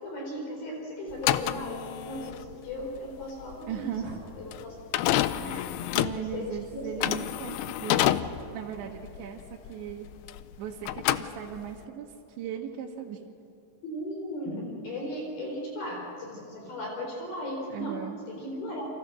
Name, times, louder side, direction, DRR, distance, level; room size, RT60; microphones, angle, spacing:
voice 1, 0.0-3.9 4.4-4.8 5.4-5.6 6.2-7.1 13.8-17.9 18.3-18.9, left 1 dB, 60° left, -1 dB, 5.8 m, -37 dB
sound 1, 1.1-10.6 10.8-11.8, left 14 dB, 80° left, 2.4 m, -29 dB
voice 2, 3.7-4.2 5.4-10.1 10.6-13.3 17.7-18.2, right 8 dB, 85° right, -2 dB, 3.8 m, -38 dB
30.0 x 26.0 x 6.3 m, 2.8 s
omnidirectional pair, 5.0 m